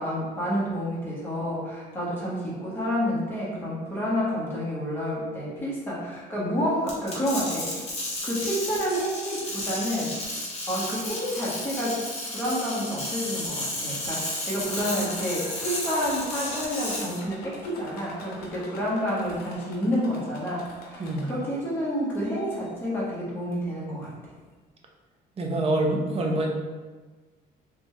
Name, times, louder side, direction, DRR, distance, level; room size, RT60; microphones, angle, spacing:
voice 1, 0.0-7.9 8.2-10.2 10.7-24.1, equal, 15° left, -7 dB, 1.3 m, -29 dB
sound 1, 6.9-17.2, left 1 dB, 40° left, 1.1 m, -33 dB
sound 2, 14.6-21.6 22.1-22.7 23.5-23.6 24.0-24.1, left 2 dB, 70° left, 0.8 m, -45 dB
voice 2, 25.4-26.5, right 2 dB, 35° right, 0 dB, 0.7 m, -25 dB
3.3 x 2.6 x 3.2 m, 1.3 s
cardioid pair, 110°, 17 cm